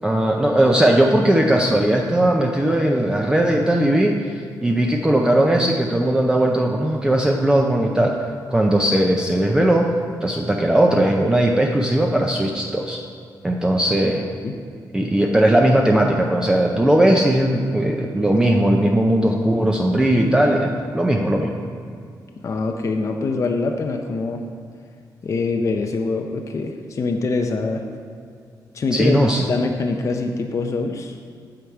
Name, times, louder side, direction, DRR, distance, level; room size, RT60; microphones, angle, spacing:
voice 1, 0.0-8.2 8.5-9.9 10.2-13.0 13.4-14.3 14.9-21.5 28.9-29.5, right 1 dB, 10° right, 0 dB, 0.5 m, -18 dB
voice 2, 22.4-24.4 25.2-27.8 28.7-31.2, left 3 dB, 45° left, 4 dB, 0.5 m, -24 dB
8.6 x 7.6 x 4.8 m, 2.3 s
wide cardioid pair, 140°, 8 cm